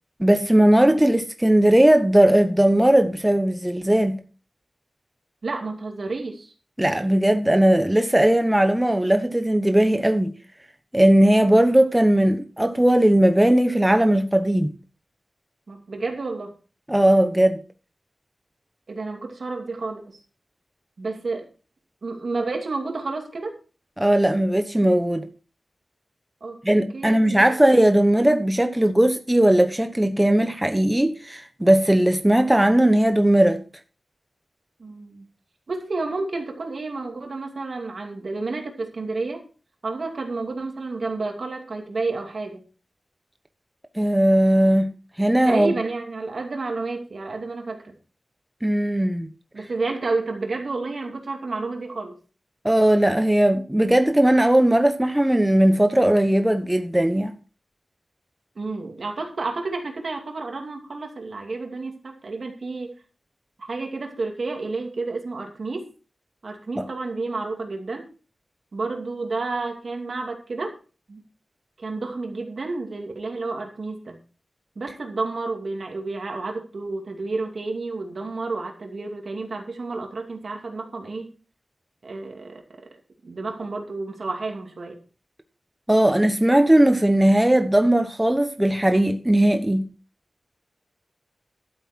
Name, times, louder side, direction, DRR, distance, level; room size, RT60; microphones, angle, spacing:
voice 1, 0.2-4.2 6.8-10.3 10.9-14.7 16.9-17.6 24.0-25.3 26.6-33.6 43.9-44.9 45.2-45.7 48.6-49.3 52.6-57.3 66.8-66.9 85.9-89.9, right 1 dB, 10° right, 0.9 m, -18 dB
voice 2, 5.4-6.5 15.7-16.5 18.9-20.2 21.0-21.5 22.0-23.5 26.4-26.6 26.9-27.6 34.8-35.3 35.7-39.4 39.8-42.6 45.4-47.9 49.5-52.2 58.6-62.9 63.6-65.9 66.4-68.1 68.7-70.7 71.1-71.2 71.8-74.2 74.8-81.3 82.0-82.6 83.2-85.0, right 3 dB, 65° right, 2.6 m, -30 dB
12.0 x 8.0 x 4.5 m
wide cardioid pair, 90°, 0 cm